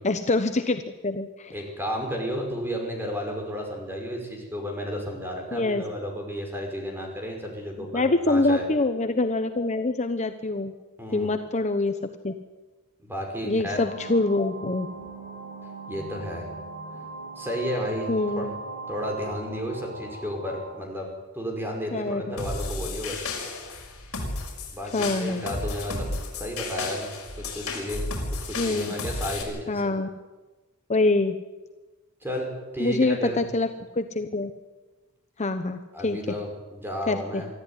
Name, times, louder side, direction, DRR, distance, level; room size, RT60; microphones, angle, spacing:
voice 1, 0.0-1.5 5.5-5.8 7.9-10.7 11.1-12.0 12.2-12.3 13.4-14.9 18.1-18.5 21.9-22.3 24.9-25.5 28.6-28.9 29.7-30.1 30.9-31.4 32.8-33.7 34.0-34.5 35.4-36.2 37.1-37.4, left 2 dB, 30° left, 8 dB, 0.9 m, -25 dB
voice 2, 1.5-8.6 11.0-11.3 13.0-13.8 15.9-16.5 17.4-18.5 18.9-23.3 24.7-27.1 27.4-28.1 28.5-29.9 32.2-33.4 35.9-37.5, equal, 10° right, 2 dB, 5.3 m, -32 dB
sound 1, 13.7-20.7, right 3 dB, 35° right, 7.1 m, -39 dB
sound 2, 22.4-29.4, left 2 dB, 70° left, 6.1 m, -33 dB
24.0 x 14.0 x 9.8 m, 1.2 s
head